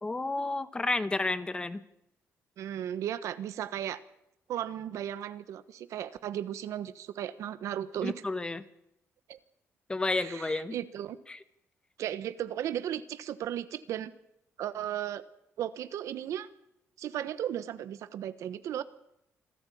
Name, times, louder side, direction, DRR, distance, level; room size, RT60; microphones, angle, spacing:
voice 1, 0.0-1.8 8.0-8.6 9.9-10.8 11.3-11.4, left 2 dB, 20° left, 13 dB, 1.2 m, -31 dB
voice 2, 2.6-4.0 4.5-8.2 9.3-9.4 10.1-11.2 12.0-14.1 14.6-15.2 15.6-16.5 17.0-18.8, right 11 dB, 80° right, 13 dB, 1.2 m, -35 dB
26.0 x 13.5 x 8.6 m, 0.80 s
cardioid pair, 120°, 5 cm